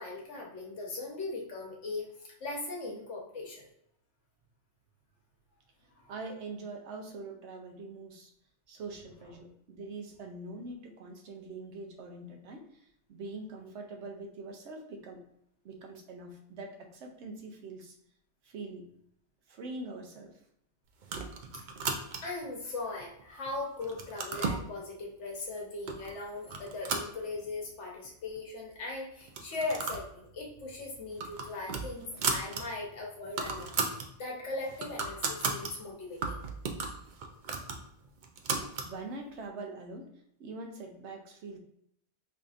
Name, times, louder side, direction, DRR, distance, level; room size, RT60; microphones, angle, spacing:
voice 1, 0.0-3.7 6.0-6.1 22.2-36.4, left 3 dB, 85° left, -1 dB, 1.2 m, -39 dB
voice 2, 6.1-8.3 8.7-12.7 13.1-15.2 15.6-18.0 18.4-18.9 19.5-20.3 38.8-40.1 40.4-41.6, right 3 dB, 80° right, 3 dB, 1.0 m, -43 dB
sound 1, 21.0-22.5 23.0-23.5 23.8-24.7 25.4-25.5 25.9-26.1 26.5-27.7 28.1-28.2 28.4-28.5 29.2-30.1 30.4-30.6 31.0-32.6 33.0-33.1 33.3-34.1 34.5-35.7 36.2-38.9, right 4 dB, 60° right, 0.5 m, -35 dB
5.0 x 2.6 x 2.4 m, 0.75 s
omnidirectional pair, 1.2 m